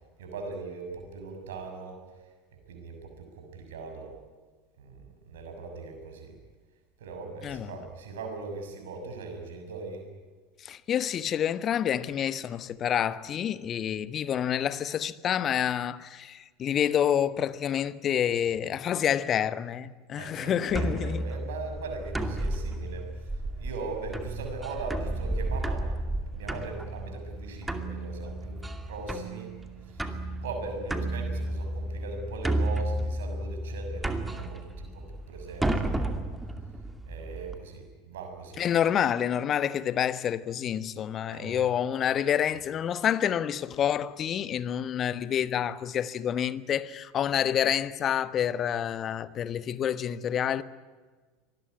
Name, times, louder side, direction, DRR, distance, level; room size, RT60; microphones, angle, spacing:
voice 1, 0.2-2.0 2.7-4.1 4.8-6.3 7.0-10.1 20.1-25.9 26.3-29.5 29.8-36.2 37.1-38.7 41.3-41.6, right 3 dB, 65° right, 6.8 m, -40 dB
voice 2, 10.6-21.3 38.6-50.6, left 9 dB, 35° left, 1.2 m, -28 dB
sound 1, 20.7-37.6, right 1 dB, 10° right, 2.5 m, -32 dB
25.5 x 20.5 x 9.7 m
figure-of-eight pair, 75°, 0 cm